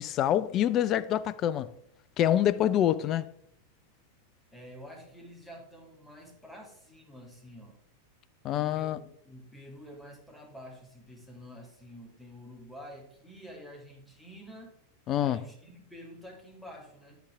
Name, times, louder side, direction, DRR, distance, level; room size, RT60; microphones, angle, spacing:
voice 1, 0.0-1.7 2.2-3.3 8.4-9.0 15.1-15.4, left 11 dB, 35° left, 0.4 m, -26 dB
voice 2, 4.5-7.8 8.5-14.7 15.2-17.2, equal, 5° left, 2.2 m, -48 dB
9.7 x 8.1 x 3.5 m
figure-of-eight pair, 90°, 0 cm